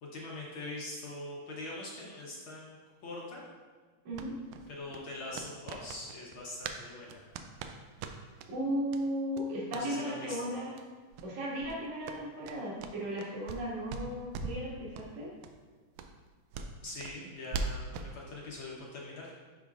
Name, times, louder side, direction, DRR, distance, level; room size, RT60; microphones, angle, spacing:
voice 1, 0.0-3.4 4.7-7.3 9.7-10.5 16.8-19.3, left 2 dB, 65° left, -4 dB, 1.3 m, -43 dB
sound 1, 4.1-6.8 7.1-8.5 8.9-9.0 9.3-9.9 10.2-10.4 10.7-10.8 11.1-11.3 11.6-13.6 13.9-14.6 14.9-15.1 15.4-15.5 15.9-18.1, right 4 dB, 85° right, 2.0 m, -41 dB
voice 2, 8.5-10.7 11.2-15.3, equal, 70° right, -7 dB, 3.2 m, -35 dB
11.0 x 4.9 x 2.4 m, 1.5 s
omnidirectional pair, 3.4 m